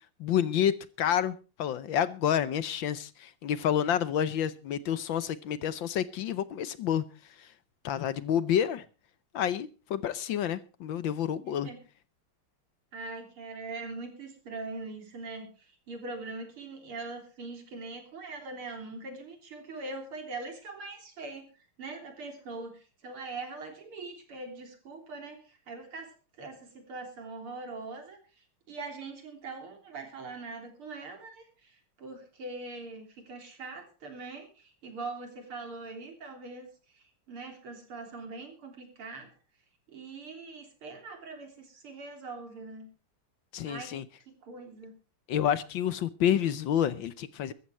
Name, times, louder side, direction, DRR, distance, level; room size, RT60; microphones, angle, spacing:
voice 1, 0.2-7.0 7.4-7.5 7.8-8.8 9.3-11.7 43.5-44.0 45.3-47.5, left 9 dB, 65° left, 1.5 m, -29 dB
voice 2, 11.4-11.8 12.9-39.3 39.9-42.9 43.6-44.0 44.3-44.9, right 3 dB, 75° right, 4.2 m, -42 dB
14.5 x 14.0 x 4.4 m
omnidirectional pair, 2.4 m